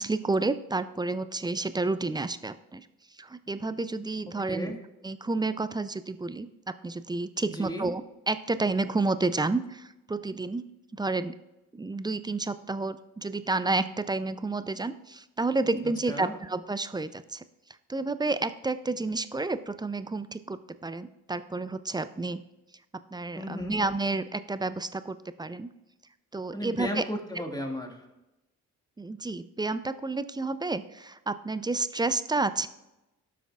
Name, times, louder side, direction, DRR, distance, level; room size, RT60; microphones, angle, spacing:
voice 1, 0.0-2.9 3.2-4.8 5.0-10.7 11.0-11.3 11.7-17.4 17.9-22.4 23.1-25.7 26.3-27.0 29.0-32.7, right 3 dB, 10° right, 13 dB, 0.4 m, -30 dB
voice 2, 4.3-4.8 7.4-7.9 15.8-16.3 23.4-23.8 26.5-28.1, equal, 10° left, 1 dB, 2.0 m, -35 dB
13.5 x 5.9 x 2.4 m, 0.95 s
hypercardioid pair, 40°, 39 cm